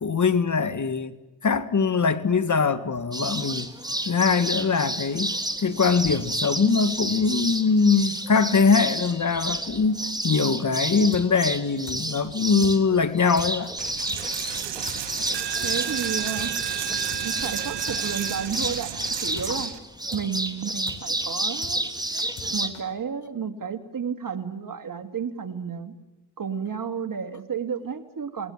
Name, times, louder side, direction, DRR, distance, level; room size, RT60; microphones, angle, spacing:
voice 1, 0.0-1.1 1.4-3.7 4.1-13.7 19.5-19.6, left 5 dB, 45° left, 1.9 m, -22 dB
sound 1, 3.1-22.7, right 1 dB, 10° right, 3.2 m, -31 dB
sound 2, 11.1-11.2 11.5-11.6 11.9-12.0 12.2-12.3 12.6-12.7 13.0-13.1 13.4-13.5 13.7-13.8 14.1-14.2 14.5-14.6 14.9-15.0 15.2-15.3 15.6-15.7 16.0-16.5 16.7-16.8 17.1-17.2 17.5-17.6 17.9-18.0 18.2-18.3 18.6-18.7 19.0-19.1 19.4-19.5 19.7-19.8 20.1-20.2 20.5-20.6 20.9-21.0 21.2-21.3 21.6-21.7 22.0-22.5 22.7-22.8, left 5 dB, 85° left, 4.5 m, -41 dB
Coin (dropping), 13.8-19.8, right 11 dB, 75° right, 1.8 m, -32 dB
voice 2, 15.6-16.5 17.2-19.7 20.1-21.8 22.4-25.9 26.4-28.5, right 7 dB, 50° right, 2.7 m, -32 dB
28.5 x 20.5 x 7.4 m
supercardioid pair, 55°, 42 cm